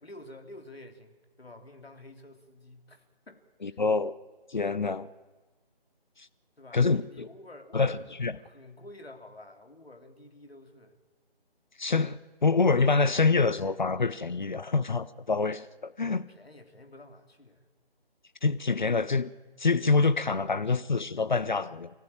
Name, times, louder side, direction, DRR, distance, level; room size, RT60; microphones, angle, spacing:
voice 1, 0.0-3.8 6.6-8.1 8.4-11.0 16.3-17.7, left 1 dB, 75° left, 3.4 m, -50 dB
voice 2, 3.6-4.2 4.5-5.1 6.2-6.3 6.7-7.3 7.7-8.3 11.8-16.3 18.4-19.3 19.6-21.9, left 4 dB, 50° left, 0.8 m, -26 dB
28.5 x 15.0 x 9.1 m
figure-of-eight pair, 155°, 31 cm